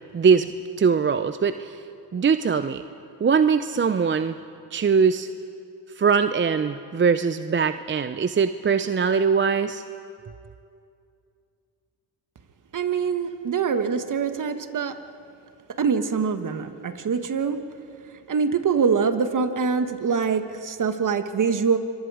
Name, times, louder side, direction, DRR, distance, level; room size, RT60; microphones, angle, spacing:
voice 1, 0.1-0.5 0.8-1.8 2.1-2.8 3.2-4.4 4.7-5.3 6.0-9.8, right 6 dB, 25° right, 11 dB, 0.6 m, -21 dB
voice 2, 12.7-15.0 15.8-17.6 18.3-21.8, right 6 dB, 45° right, 9 dB, 1.5 m, -24 dB
26.5 x 23.0 x 4.9 m, 2.5 s
supercardioid pair, 75°, 45 cm